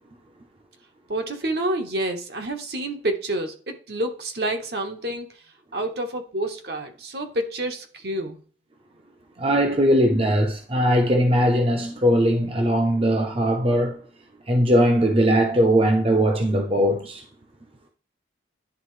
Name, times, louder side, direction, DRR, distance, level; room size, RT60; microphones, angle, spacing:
voice 1, 1.1-5.3 5.7-8.4, right 1 dB, 60° right, 1.1 m, -28 dB
voice 2, 9.4-14.0 14.5-17.2, equal, 30° right, 0.7 m, -20 dB
11.0 x 3.7 x 3.2 m
head